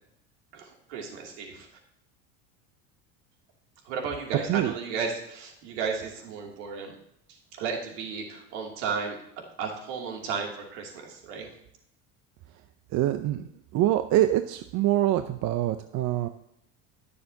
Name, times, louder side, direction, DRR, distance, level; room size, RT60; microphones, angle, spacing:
voice 1, 0.5-1.7 3.8-6.9 7.3-9.2 9.6-11.5, right 5 dB, 75° right, 0 dB, 2.8 m, -34 dB
voice 2, 12.9-13.5 13.7-16.3, right 13 dB, 50° right, 9 dB, 0.7 m, -25 dB
18.5 x 6.9 x 2.8 m, 0.74 s
supercardioid pair, 100°, 36 cm